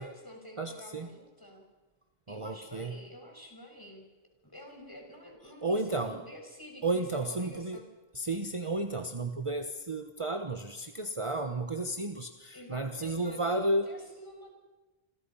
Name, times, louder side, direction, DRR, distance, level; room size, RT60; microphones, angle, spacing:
voice 1, 0.0-1.7 2.3-4.1 4.4-7.9 12.5-14.5, equal, 20° left, 2 dB, 6.2 m, -49 dB
voice 2, 0.6-1.1 2.3-3.0 5.4-6.2 6.8-7.8 8.1-13.9, right 2 dB, 30° right, 6 dB, 1.2 m, -32 dB
29.0 x 26.5 x 5.7 m, 1.2 s
omnidirectional pair, 1.1 m